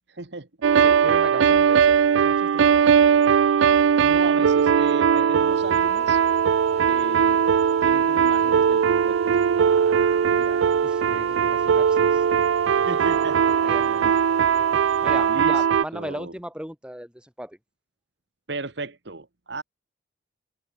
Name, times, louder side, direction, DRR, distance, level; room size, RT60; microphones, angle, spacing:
voice 1, 0.1-0.5 4.0-6.2 6.9-7.4 7.8-9.2 12.8-13.5 14.0-14.2 15.3-15.6 15.9-16.3 18.5-19.6, right 3 dB, 60° right, 1.4 m, -34 dB
sound 1, 0.6-15.8, right 7 dB, 80° right, 0.4 m, -19 dB
voice 2, 0.8-2.8 9.6-12.2 12.8-12.9 13.1-13.2 13.6-14.2 15.0-17.6, equal, 5° right, 2.0 m, -38 dB
sound 2, 5.2-15.6, right 1 dB, 35° right, 3.0 m, -43 dB
open air
head